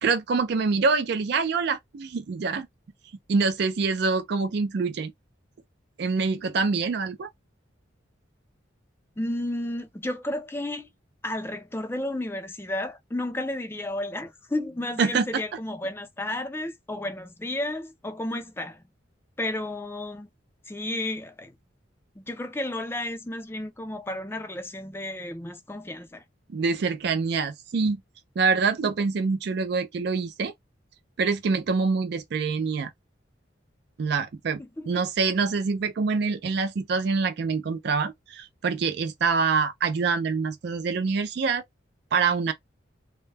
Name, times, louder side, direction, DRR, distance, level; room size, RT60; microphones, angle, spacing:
voice 1, 0.0-2.7 3.3-5.1 6.0-7.3 15.0-15.2 26.5-28.0 28.4-30.5 31.2-32.9 34.0-34.6 34.9-41.6 42.1-42.5, right 4 dB, 60° right, 0.4 m, -25 dB
voice 2, 9.2-10.9 11.2-18.8 19.4-20.3 20.7-21.6 22.2-26.2 34.6-35.0, left 1 dB, 10° left, 0.4 m, -32 dB
2.2 x 2.0 x 3.2 m
head